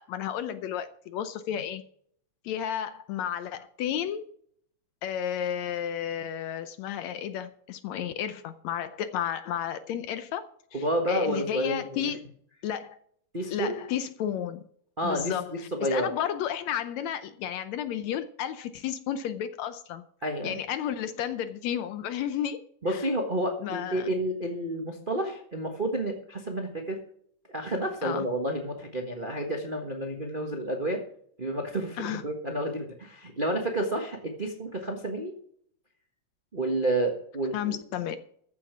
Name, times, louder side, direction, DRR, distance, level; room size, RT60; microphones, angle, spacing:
voice 1, 0.0-1.8 2.4-4.2 5.0-10.4 10.7-12.2 12.6-13.0 13.5-14.6 15.0-20.0 20.4-22.6 22.9-23.0 23.6-24.1 28.0-28.2 32.0-32.2 37.5-38.2, left 9 dB, 75° left, 11 dB, 1.8 m, -32 dB
voice 2, 10.7-12.0 13.3-13.8 15.0-16.1 20.2-20.6 22.8-27.0 27.5-31.0 31.4-35.3 36.5-37.8, right 1 dB, 40° right, 2 dB, 0.7 m, -30 dB
14.0 x 7.2 x 6.0 m, 0.63 s
omnidirectional pair, 3.6 m